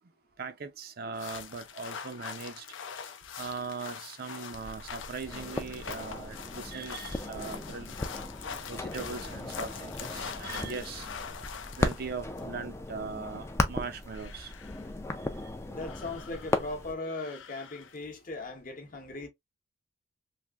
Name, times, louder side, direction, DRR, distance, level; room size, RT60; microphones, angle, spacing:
voice 1, 0.4-2.6 3.4-7.9 8.7-11.1 11.8-14.5 15.4-15.5, right 4 dB, 50° right, 0.5 m, -40 dB
sound 1, 1.1-12.4 13.8-14.9 15.8-16.7 17.1-18.0, left 6 dB, 70° left, 0.5 m, -43 dB
sound 2, 4.5-16.9, left 2 dB, 15° left, 0.3 m, -36 dB
voice 2, 15.7-19.3, left 2 dB, 45° left, 0.8 m, -38 dB
3.3 x 2.6 x 2.3 m
head